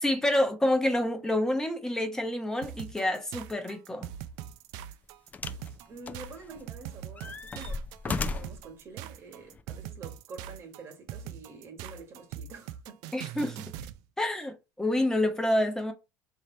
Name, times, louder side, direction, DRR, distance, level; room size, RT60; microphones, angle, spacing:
voice 1, 0.0-4.1 13.1-13.6 14.2-15.9, left 1 dB, 10° left, 0.9 m, -28 dB
sound 1, 2.6-14.0, right 10 dB, 75° right, 0.4 m, -41 dB
sound 2, 4.1-4.3 5.3-5.7 6.1-6.8 7.2-8.7 9.5-9.6, left 4 dB, 25° left, 0.4 m, -35 dB
voice 2, 5.9-13.0, right 4 dB, 45° right, 1.3 m, -47 dB
3.2 x 2.7 x 4.3 m
supercardioid pair, 105°, 7 cm